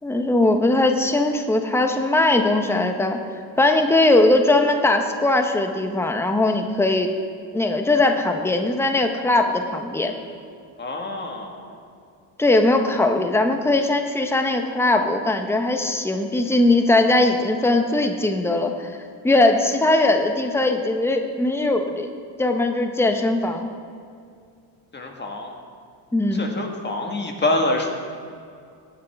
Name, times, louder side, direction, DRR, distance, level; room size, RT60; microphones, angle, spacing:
voice 1, 0.0-3.2 3.6-7.1 7.5-10.1 12.4-18.9 19.2-22.1 22.4-23.7 26.1-26.5, left 2 dB, 5° left, 5 dB, 1.0 m, -20 dB
voice 2, 10.8-11.6 24.9-25.5 26.3-27.9, left 2 dB, 20° left, 2 dB, 1.8 m, -26 dB
19.0 x 8.7 x 3.6 m, 2.3 s
supercardioid pair, 95°, 47 cm